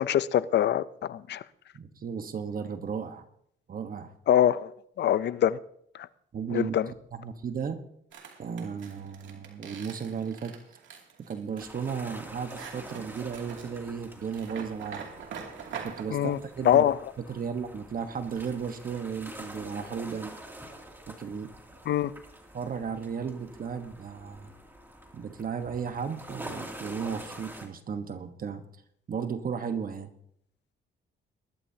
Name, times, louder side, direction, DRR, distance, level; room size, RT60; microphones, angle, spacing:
voice 1, 0.0-1.4 4.3-4.7 5.0-5.6 6.5-6.9 16.1-16.4 16.6-17.0 21.9-22.1, left 10 dB, 60° left, 0.6 m, -24 dB
voice 2, 1.7-3.2 3.7-4.1 6.3-7.8 8.4-10.5 11.2-15.0 15.8-16.8 17.3-20.4 21.1-21.5 22.5-24.5 25.1-28.6 29.1-30.1, right 6 dB, 45° right, 1.2 m, -35 dB
sound 1, 8.1-16.0, right 6 dB, 70° right, 2.6 m, -44 dB
sound 2, 11.6-27.7, right 1 dB, 10° right, 2.6 m, -46 dB
21.0 x 12.0 x 2.8 m
cardioid pair, 90°, 20 cm